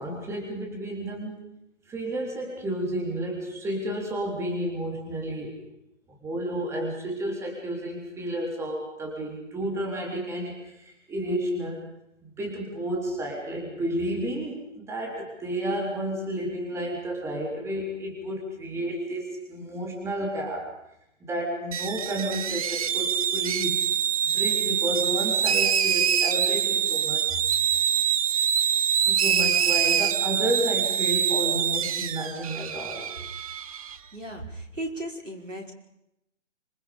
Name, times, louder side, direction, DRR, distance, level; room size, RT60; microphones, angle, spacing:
voice 1, 0.0-1.4 1.9-5.5 6.1-11.9 12.2-20.7 21.2-23.8 24.2-27.3 29.0-33.1, right 1 dB, 5° right, 0 dB, 3.7 m, -31 dB
sound 1, 21.7-34.0, right 8 dB, 30° right, 1.0 m, -25 dB
voice 2, 34.1-35.7, right 1 dB, 85° right, 1 dB, 5.4 m, -36 dB
26.0 x 25.0 x 5.2 m, 0.83 s
figure-of-eight pair, 140°, 37 cm